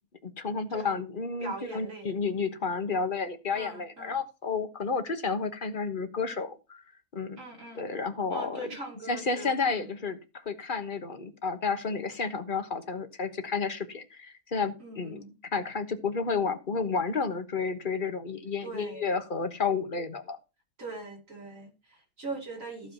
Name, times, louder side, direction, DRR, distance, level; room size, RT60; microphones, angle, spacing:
voice 1, 0.2-6.8 7.1-7.4 7.7-8.7 9.1-15.2 15.5-20.4, left 4 dB, 35° left, 8 dB, 1.3 m, -31 dB
voice 2, 1.4-2.6 3.5-4.2 7.4-7.9 8.3-9.9 14.8-15.3 18.6-19.1 20.8-22.9, right 3 dB, 60° right, -1 dB, 3.4 m, -41 dB
14.5 x 4.9 x 5.6 m, 0.29 s
omnidirectional pair, 1.5 m